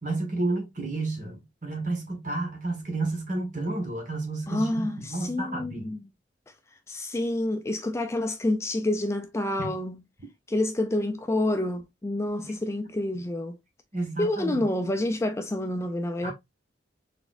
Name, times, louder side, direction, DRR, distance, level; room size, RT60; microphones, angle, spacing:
voice 1, 0.0-5.9 9.6-9.7 12.4-12.5 13.9-14.6 16.2-16.3, right 2 dB, 40° right, 1.5 m, -31 dB
voice 2, 4.5-6.0 6.9-10.0 10.5-13.6 14.2-16.3, left 1 dB, 15° left, 0.3 m, -28 dB
4.2 x 3.4 x 2.5 m
head